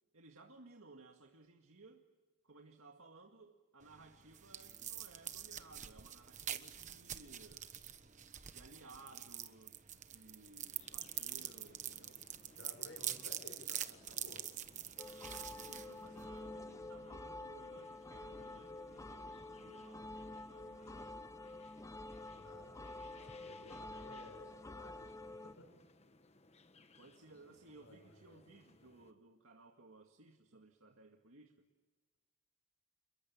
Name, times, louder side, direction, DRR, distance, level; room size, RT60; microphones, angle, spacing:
voice 1, 0.1-2.1 2.4-7.7 8.5-12.2 15.5-21.5 27.0-31.6, right 3 dB, 75° right, 3 dB, 2.1 m, -60 dB
sound 1, 3.8-16.5, right 10 dB, 35° right, 1.3 m, -46 dB
sound 2, 10.8-29.1, left 2 dB, 30° left, 1.3 m, -64 dB
voice 2, 12.6-14.4 22.3-22.7 23.1-25.7 27.8-28.4, left 2 dB, 70° left, 4 dB, 5.9 m, -57 dB
sound 3, 15.0-25.5, left 2 dB, 15° left, 0.8 m, -49 dB
29.0 x 22.5 x 7.3 m, 1.3 s
head